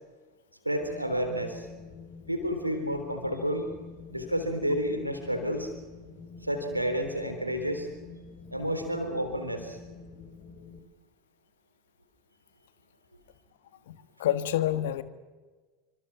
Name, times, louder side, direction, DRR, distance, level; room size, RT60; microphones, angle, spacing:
voice 1, 0.6-1.7 2.3-3.7 4.1-5.7 6.4-7.9 8.5-9.8, equal, 90° right, 6 dB, 3.6 m, -30 dB
Wind, 0.8-10.8, left 4 dB, 35° left, 3.3 m, -47 dB
voice 2, 13.9-15.0, left 12 dB, 60° left, 14 dB, 1.5 m, -28 dB
28.0 x 25.5 x 6.0 m, 1.3 s
figure-of-eight pair, 75°, 0 cm